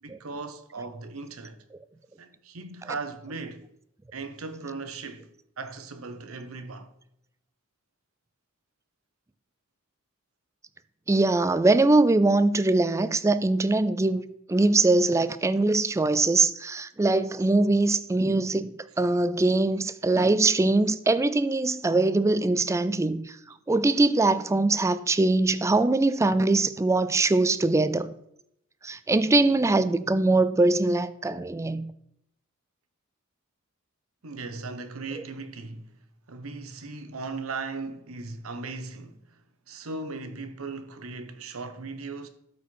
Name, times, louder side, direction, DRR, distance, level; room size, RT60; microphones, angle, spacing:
voice 1, 0.0-1.6 2.2-3.7 4.1-6.9 23.5-23.6 34.2-35.9 36.3-39.4 39.7-42.3, right 3 dB, 85° right, 1.0 m, -38 dB
voice 2, 11.1-23.4 23.7-28.1 28.8-31.9, right 2 dB, 15° right, 0.3 m, -22 dB
12.5 x 4.4 x 4.6 m
head